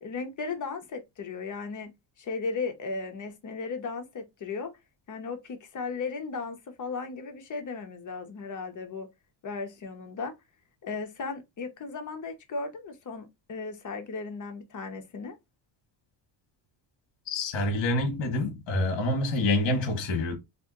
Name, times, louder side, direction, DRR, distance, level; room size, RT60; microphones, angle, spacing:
voice 1, 0.0-4.7 5.1-9.1 9.4-10.3 10.8-15.4, left 4 dB, 40° left, 1.0 m, -36 dB
voice 2, 17.3-20.4, left 2 dB, 65° left, 1.3 m, -27 dB
2.6 x 2.6 x 3.7 m
cardioid pair, 115°, 47 cm